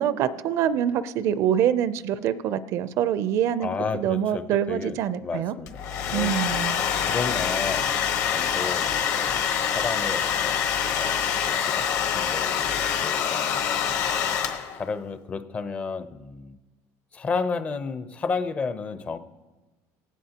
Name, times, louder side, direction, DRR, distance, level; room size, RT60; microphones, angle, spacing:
voice 1, 0.0-3.7 3.9-5.5 6.1-6.8, right 10 dB, 50° right, 14 dB, 0.5 m, -25 dB
voice 2, 3.6-5.8 6.1-14.1 14.5-16.6 17.1-19.2, left 4 dB, 25° left, 12 dB, 0.5 m, -33 dB
Domestic sounds home sounds, 5.7-14.9, left 8 dB, 55° left, 1.1 m, -25 dB
18.0 x 15.5 x 2.9 m, 1.2 s
cardioid pair, 165°, 6 cm